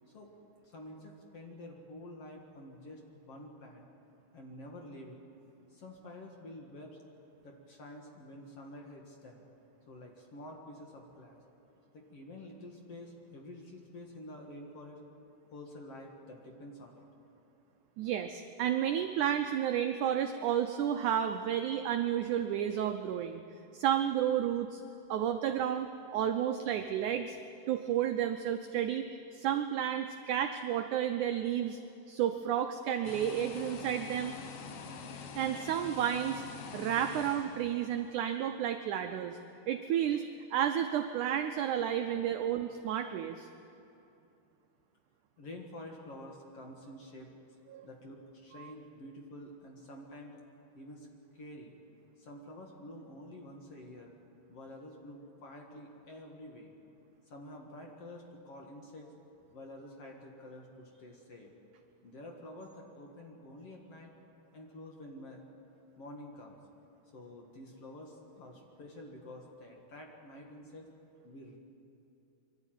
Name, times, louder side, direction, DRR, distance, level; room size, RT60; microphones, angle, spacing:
voice 1, 0.7-3.9 4.3-5.2 5.7-7.0 7.4-9.4 9.9-11.4 11.9-15.0 15.5-17.0 45.4-47.3 47.8-50.4 50.7-51.1 51.3-51.8 52.2-54.1 54.5-56.7 57.3-59.1 59.5-61.5 62.0-64.1 64.5-65.4 66.0-66.6 67.1-70.9 71.2-71.6, left 1 dB, 50° left, 1 dB, 2.2 m, -49 dB
voice 2, 18.0-23.4 23.7-24.8 25.1-27.4 27.7-29.1 29.3-31.8 32.1-34.4 35.4-36.4 36.7-39.4 39.7-40.2 40.5-43.5 47.7-47.9 48.6-48.7, right 10 dB, 85° right, 6 dB, 1.7 m, -31 dB
sound 1, 33.0-38.2, left 5 dB, 75° left, 1.3 m, -45 dB
24.5 x 12.5 x 9.1 m, 2.7 s
omnidirectional pair, 4.4 m